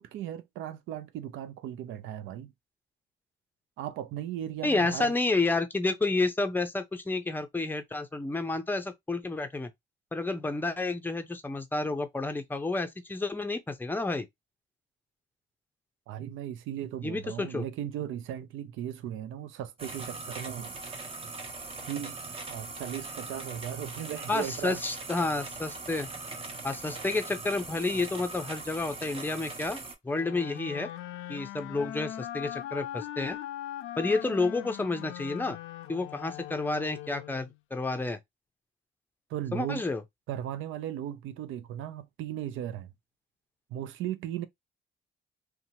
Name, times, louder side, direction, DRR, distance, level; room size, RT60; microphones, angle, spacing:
voice 1, 0.0-2.5 3.8-5.1 16.1-20.7 21.9-22.2 22.5-24.8 39.3-39.8 40.3-42.9 43.7-44.5, right 11 dB, 85° right, 0.4 m, -37 dB
voice 2, 4.6-9.7 10.1-14.3 17.0-17.6 24.3-26.1 26.6-30.9 31.3-33.4 34.0-35.6 35.9-38.2 39.5-40.0, left 3 dB, 10° left, 0.5 m, -30 dB
sound 1, 19.8-29.9, right 3 dB, 30° right, 0.7 m, -41 dB
sound 2, 30.1-37.6, left 12 dB, 85° left, 0.4 m, -40 dB
2.8 x 2.2 x 2.7 m
cardioid pair, 90°, 20 cm